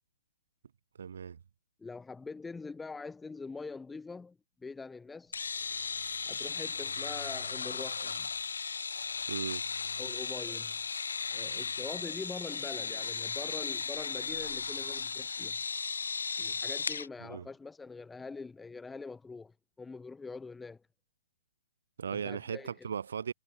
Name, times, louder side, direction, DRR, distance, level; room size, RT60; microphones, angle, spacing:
voice 1, 1.0-1.4 9.3-9.6 17.2-17.5 22.0-23.3, right 7 dB, 70° right, 5.0 m, -37 dB
voice 2, 1.8-5.4 6.2-8.3 10.0-10.8 11.3-15.6 16.4-20.8 22.1-22.9, left 4 dB, 10° left, 7.4 m, -44 dB
sound 1, 5.3-17.1, left 5 dB, 80° left, 4.6 m, -36 dB
hypercardioid pair, 130°, 0 cm